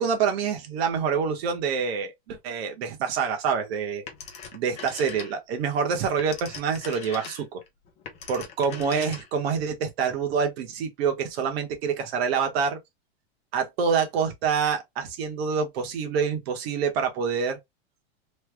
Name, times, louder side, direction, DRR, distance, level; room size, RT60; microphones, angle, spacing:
voice 1, 0.0-4.0 4.5-7.6 8.3-12.8 13.5-17.6, right 6 dB, 65° right, 1.3 m, -26 dB
Telephone, 4.1-5.6 6.0-9.6, left 6 dB, 20° left, 0.6 m, -41 dB
3.3 x 2.2 x 3.5 m
supercardioid pair, 160°, 33 cm